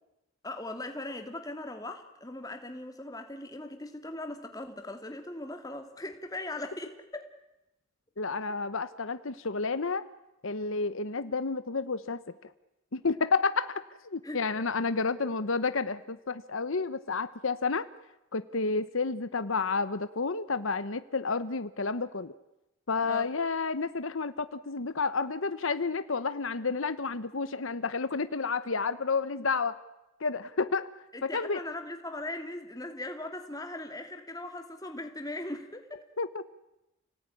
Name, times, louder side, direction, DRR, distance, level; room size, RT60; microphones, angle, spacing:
voice 1, 0.4-7.3 8.5-8.6 14.2-14.4 23.1-23.3 31.1-36.1, left 2 dB, 15° left, 5 dB, 2.5 m, -39 dB
voice 2, 8.2-10.0 10.4-12.5 12.9-17.9 18.3-22.3 22.9-29.8 30.2-30.9 31.2-31.6 36.2-36.4, left 4 dB, 75° left, 13 dB, 1.0 m, -30 dB
29.5 x 18.5 x 9.9 m, 0.94 s
head